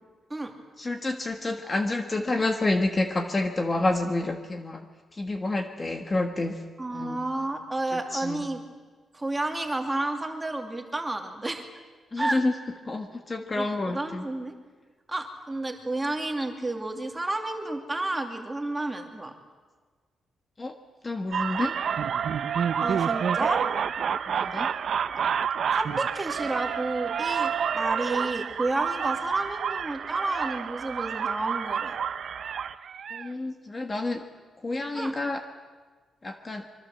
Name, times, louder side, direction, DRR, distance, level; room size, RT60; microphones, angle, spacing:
voice 1, 0.8-4.9 5.1-6.6 6.9-7.2 7.9-8.4 12.1-12.5 12.8-14.3 20.6-20.7 21.0-21.7 24.3-24.7 33.1-34.2 34.6-35.4 36.2-36.6, left 2 dB, 20° left, 5 dB, 1.4 m, -29 dB
voice 2, 6.8-8.6 9.1-11.6 12.2-12.4 13.5-14.6 15.1-19.3 22.8-23.6 25.7-32.0 34.9-35.1, right 2 dB, 10° right, 4 dB, 2.5 m, -31 dB
sound 1, 21.3-33.3, right 7 dB, 55° right, 0.8 m, -29 dB
25.5 x 24.0 x 7.7 m, 1.4 s
wide cardioid pair, 165°, 0 cm